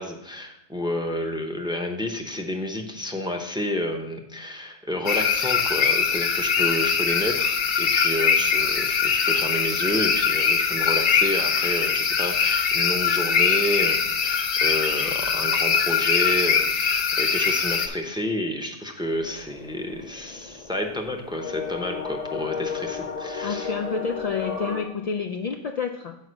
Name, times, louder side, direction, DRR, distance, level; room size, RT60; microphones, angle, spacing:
voice 1, 0.0-23.7, left 1 dB, 5° right, 3 dB, 0.6 m, -30 dB
sound 1, 5.1-17.9, left 6 dB, 60° left, 0.9 m, -22 dB
sound 2, 19.1-24.8, left 5 dB, 35° left, 0.8 m, -34 dB
voice 2, 23.4-26.2, left 5 dB, 75° left, 3 dB, 0.3 m, -29 dB
6.4 x 5.0 x 6.3 m, 0.83 s
omnidirectional pair, 1.2 m